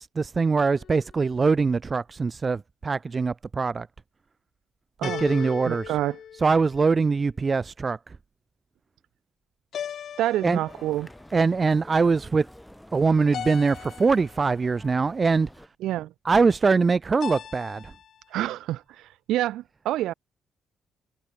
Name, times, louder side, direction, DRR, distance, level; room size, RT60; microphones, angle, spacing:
voice 1, 0.0-3.9 5.0-6.0 6.3-8.0 10.4-10.6 11.3-12.5 12.9-15.5 16.2-17.9, right 4 dB, 35° right, 0.5 m, -23 dB
sound 1, 0.6-1.3 5.0-7.0 9.7-11.1 13.3-14.5 17.2-18.2, left 9 dB, 65° left, 3.6 m, -38 dB
voice 2, 5.0-6.2 10.2-11.1 15.8-16.1 18.3-20.1, right 14 dB, 85° right, 3.9 m, -28 dB
sound 2, 10.7-15.7, equal, 5° left, 7.4 m, -49 dB
cardioid pair, 90°, 0 cm